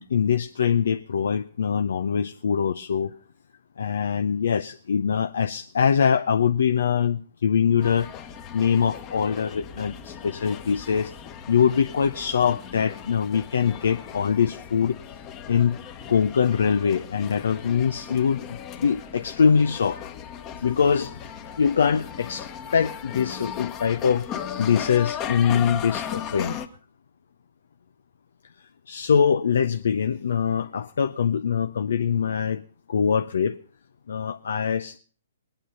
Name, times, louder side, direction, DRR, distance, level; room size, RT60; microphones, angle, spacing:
voice 1, 0.0-3.1 3.8-8.1 8.5-11.1 11.5-15.0 15.5-15.8 16.1-20.0 20.6-21.3 21.6-24.3 24.6-26.6 28.9-32.6 32.9-33.6 34.1-35.0, left 7 dB, 70° left, 9 dB, 0.6 m, -23 dB
sound 1, 7.8-26.7, left 9 dB, 30° left, 1.3 m, -37 dB
20.5 x 9.1 x 5.4 m, 0.43 s
figure-of-eight pair, 125°, 0 cm